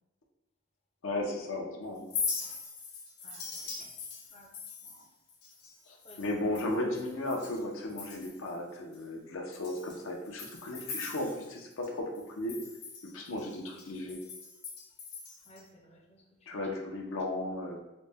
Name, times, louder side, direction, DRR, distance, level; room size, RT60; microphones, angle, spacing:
voice 1, 1.0-2.1 5.9-12.1 12.4-12.6 13.1-14.2 16.5-17.8, left 1 dB, 75° left, 0 dB, 0.6 m, -35 dB
Chink clink, 2.0-7.6 7.9-8.5 8.9-9.0 9.5-11.9 12.1-15.6, left 5 dB, 55° left, 0.9 m, -41 dB
voice 2, 15.5-16.2, left 1 dB, 30° left, 0 dB, 0.5 m, -55 dB
4.0 x 2.1 x 3.4 m, 0.95 s
head